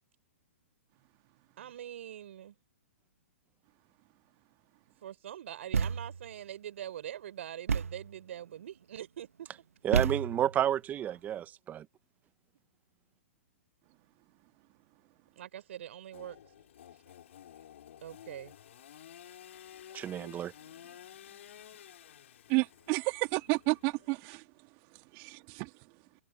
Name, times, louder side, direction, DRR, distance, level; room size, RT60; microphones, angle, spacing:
voice 1, 1.6-2.5 5.0-9.3 15.3-17.1 18.0-18.5, right 11 dB, 65° right, 4.9 m, -44 dB
Thump thud, 5.7-6.3 7.7-8.1 9.9-10.6, right 6 dB, 85° right, 1.4 m, -30 dB
voice 2, 9.8-11.8 19.9-20.5, right 10 dB, 20° right, 1.2 m, -31 dB
Engine / Sawing, 16.1-24.4, left 10 dB, 65° left, 6.1 m, -53 dB
voice 3, 22.5-24.4 25.1-25.7, right 29 dB, 40° right, 2.1 m, -31 dB
hypercardioid pair, 125°, 7 cm